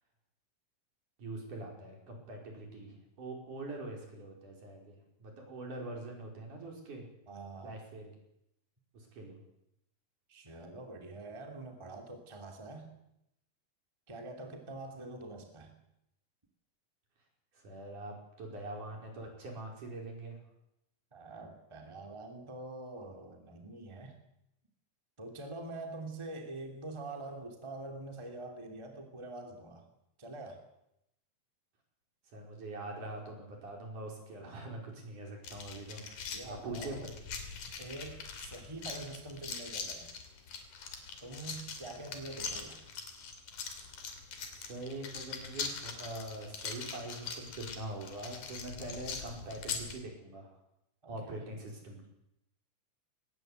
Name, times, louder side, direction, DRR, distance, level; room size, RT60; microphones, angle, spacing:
voice 1, 1.2-7.1 7.6-8.1 8.9-9.4 17.5-20.4 32.3-36.0 36.4-37.1 44.5-50.5 51.1-52.1, right 2 dB, 65° right, 1 dB, 6.6 m, -43 dB
voice 2, 7.3-7.8 10.3-12.9 14.1-15.8 21.1-24.2 25.2-29.8 30.2-30.6 36.2-37.0 37.8-40.1 41.2-42.8 51.0-51.4, right 2 dB, 10° right, 3 dB, 2.4 m, -45 dB
sound 1, 35.4-50.0, left 5 dB, 70° left, 4.2 m, -42 dB
20.0 x 18.5 x 8.1 m, 0.80 s
omnidirectional pair, 3.9 m